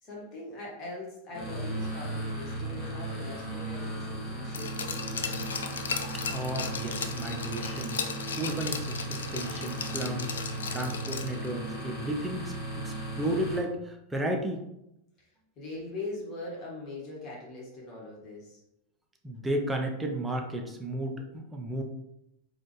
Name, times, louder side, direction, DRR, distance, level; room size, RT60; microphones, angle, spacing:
voice 1, 0.0-5.2 15.6-18.6, left 2 dB, 30° left, -4 dB, 1.5 m, -41 dB
sound 1, 1.3-13.6, right 1 dB, 15° left, 1.4 m, -36 dB
Glass, 4.5-11.5 11.8-11.9, left 6 dB, 65° left, 0.3 m, -36 dB
voice 2, 6.3-8.0 8.4-14.6 19.2-21.8, right 1 dB, 10° right, 3 dB, 0.6 m, -33 dB
4.2 x 2.4 x 3.0 m, 0.84 s
figure-of-eight pair, 90°, 0 cm